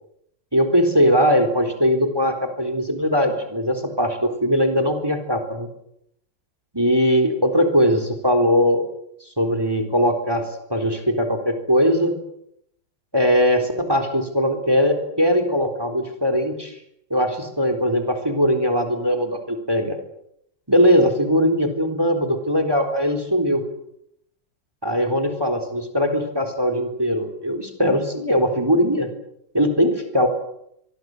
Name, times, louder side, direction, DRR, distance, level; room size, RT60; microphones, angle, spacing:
voice 1, 0.5-5.7 6.7-8.8 9.4-10.4 10.7-12.1 13.1-16.7 17.1-20.0 20.7-23.6 24.8-29.1 29.5-30.3, equal, 10° right, 8 dB, 4.0 m, -20 dB
24.5 x 23.5 x 8.0 m, 0.76 s
omnidirectional pair, 2.0 m